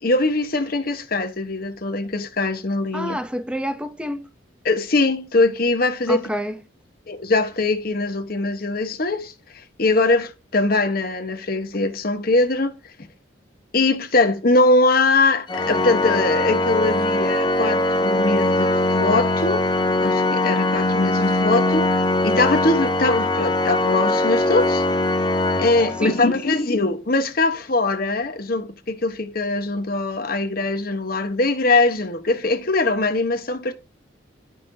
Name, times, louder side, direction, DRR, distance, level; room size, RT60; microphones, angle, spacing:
voice 1, 0.0-3.2 4.6-6.2 7.1-12.7 13.7-19.6 20.0-24.8 25.6-33.7, left 2 dB, 50° left, 1.1 m, -22 dB
voice 2, 2.9-4.3 6.1-6.6 25.8-26.6, equal, 5° right, 0.7 m, -29 dB
Organ, 15.5-26.4, left 2 dB, 25° left, 0.9 m, -21 dB
11.5 x 5.6 x 2.7 m
head